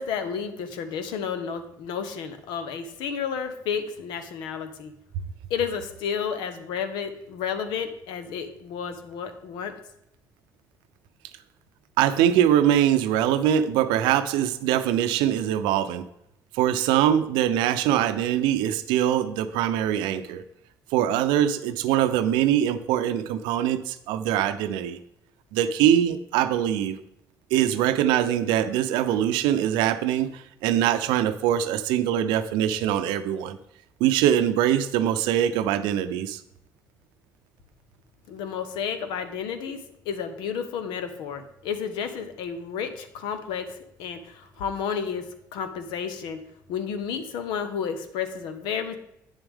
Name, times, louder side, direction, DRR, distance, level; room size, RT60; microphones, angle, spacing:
voice 1, 0.0-4.9 5.5-9.7 38.3-43.7 44.0-46.4 46.7-49.0, left 7 dB, 85° left, 9 dB, 0.9 m, -31 dB
voice 2, 12.0-16.0 16.5-20.4 20.9-25.0 25.5-27.0 27.5-33.6 34.0-36.4, right 10 dB, 90° right, 11 dB, 0.6 m, -23 dB
9.1 x 7.1 x 3.5 m, 0.79 s
supercardioid pair, 75°, 8 cm